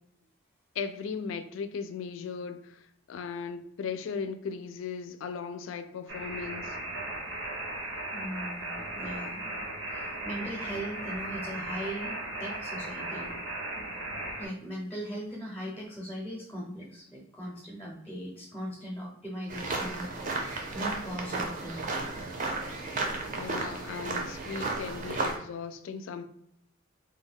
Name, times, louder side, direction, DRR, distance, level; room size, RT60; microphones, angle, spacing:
voice 1, 0.8-2.8 3.1-6.8 23.4-26.2, left 5 dB, 80° left, 10 dB, 0.3 m, -37 dB
sound 1, 6.1-14.5, right 1 dB, 80° right, 0.7 m, -37 dB
voice 2, 8.1-9.5 9.8-13.3 14.4-21.9 23.1-23.2, equal, 10° left, -3 dB, 0.6 m, -39 dB
sound 2, 19.5-25.4, right 3 dB, 40° right, 0.5 m, -33 dB
2.2 x 2.2 x 3.5 m, 0.72 s
head